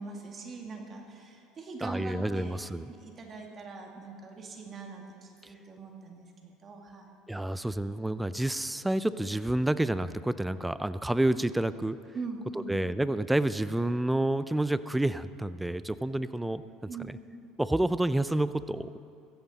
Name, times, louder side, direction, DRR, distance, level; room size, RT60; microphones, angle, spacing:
voice 1, 0.0-2.6 2.9-7.2 12.1-12.7 16.9-17.1, right 3 dB, 35° right, 2 dB, 2.0 m, -42 dB
voice 2, 1.8-2.8 7.3-12.0 12.7-16.6 17.0-17.2 17.6-19.0, right 1 dB, 5° right, 15 dB, 0.5 m, -29 dB
16.0 x 14.0 x 4.1 m, 2.7 s
supercardioid pair, 90°, 0 cm